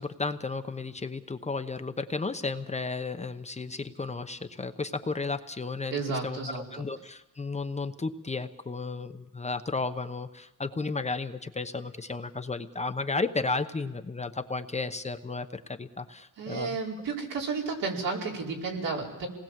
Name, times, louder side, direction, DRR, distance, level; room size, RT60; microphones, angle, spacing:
voice 1, 0.0-16.8, left 3 dB, 20° left, 8 dB, 0.9 m, -33 dB
voice 2, 5.9-6.6 16.4-19.3, right 4 dB, 80° right, -2 dB, 4.9 m, -32 dB
27.5 x 19.5 x 7.5 m, 1.0 s
wide cardioid pair, 140°, 33 cm